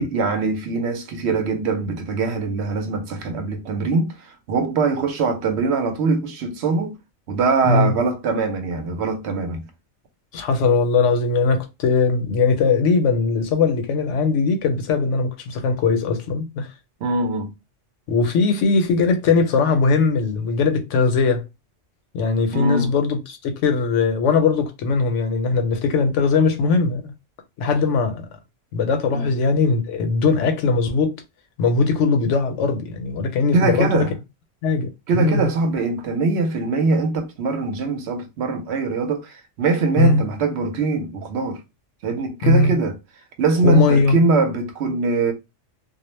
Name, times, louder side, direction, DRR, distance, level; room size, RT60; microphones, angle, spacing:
voice 1, 0.0-7.0 7.3-9.7 17.0-17.5 22.5-22.9 29.1-29.3 33.5-34.1 35.1-41.6 42.0-43.0 43.4-45.3, right 3 dB, 70° right, 0.8 m, -22 dB
voice 2, 10.3-16.7 18.1-21.4 22.1-27.1 27.6-28.3 28.7-31.2 31.6-34.0 34.6-35.5 40.0-40.2 42.4-42.7 43.6-44.2, left 4 dB, 80° left, 0.9 m, -20 dB
2.3 x 2.0 x 3.0 m
omnidirectional pair, 1.3 m